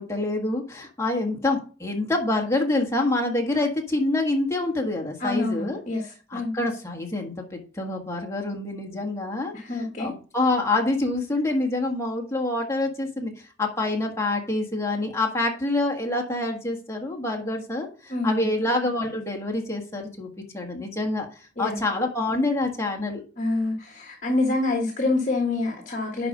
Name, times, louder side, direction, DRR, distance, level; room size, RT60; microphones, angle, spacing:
voice 1, 0.0-5.8 6.3-13.3 13.6-21.3 21.6-23.2, left 2 dB, 15° left, 0 dB, 1.6 m, -26 dB
voice 2, 5.2-6.5 9.5-10.1 18.1-18.5 21.6-21.8 23.4-26.3, left 2 dB, 40° left, 2 dB, 1.5 m, -26 dB
11.0 x 4.2 x 5.1 m, 0.38 s
head